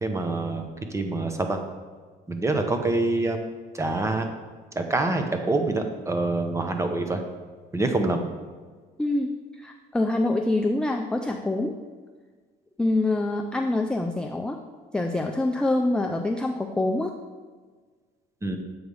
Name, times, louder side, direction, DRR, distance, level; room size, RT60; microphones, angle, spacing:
voice 1, 0.0-1.6 2.3-3.4 3.7-4.3 4.8-7.2 7.7-8.2 18.4-18.6, right 2 dB, 15° right, 5 dB, 0.8 m, -26 dB
voice 2, 9.0-11.8 12.8-14.6 14.9-17.2, left 2 dB, 5° left, 3 dB, 0.3 m, -25 dB
7.9 x 3.3 x 5.3 m, 1.5 s
cardioid pair, 110°, 17 cm